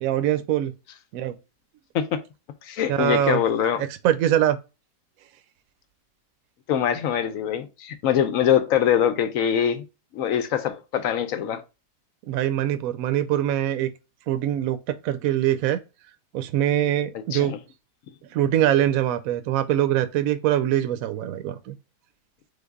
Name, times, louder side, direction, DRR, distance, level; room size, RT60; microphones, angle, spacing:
voice 1, 0.0-0.7 1.1-1.4 2.9-3.4 3.8-4.6 12.3-13.9 14.3-14.8 15.0-15.8 16.3-17.5 18.3-21.7, right 11 dB, 70° right, 0.9 m, -23 dB
voice 2, 2.6-3.8 6.7-9.8 10.1-11.6 17.3-17.6, left 9 dB, 70° left, 0.9 m, -23 dB
3.9 x 3.6 x 3.5 m
omnidirectional pair, 1.7 m